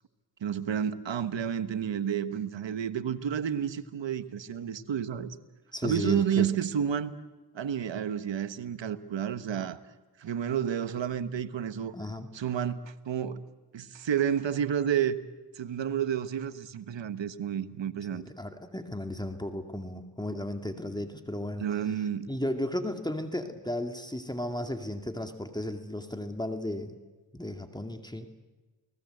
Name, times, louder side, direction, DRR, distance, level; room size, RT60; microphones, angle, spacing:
voice 1, 0.4-5.3 5.8-7.2 7.5-9.8 10.2-11.9 12.3-13.4 13.7-15.2 15.5-18.2 21.6-22.3, right 8 dB, 80° right, 1.4 m, -30 dB
voice 2, 5.7-6.5 11.9-12.3 18.1-21.7 22.3-26.9 27.3-28.3, left 1 dB, 10° left, 2.4 m, -34 dB
29.5 x 19.5 x 8.0 m
cardioid pair, 50°, 44 cm